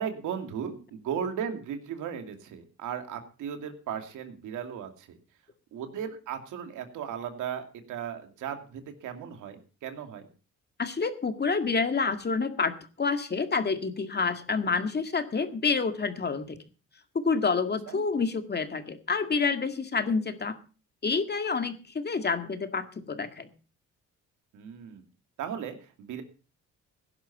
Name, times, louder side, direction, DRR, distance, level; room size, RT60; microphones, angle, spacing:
voice 1, 0.0-5.2 5.7-10.3 17.9-18.0 24.5-25.0 25.4-26.2, right 8 dB, 85° right, 6 dB, 2.6 m, -36 dB
voice 2, 10.8-12.7 13.0-16.6 17.1-20.6 21.0-23.5, left 4 dB, 35° left, 8 dB, 2.0 m, -28 dB
16.5 x 11.0 x 4.2 m, 0.34 s
cardioid pair, 90°, 30 cm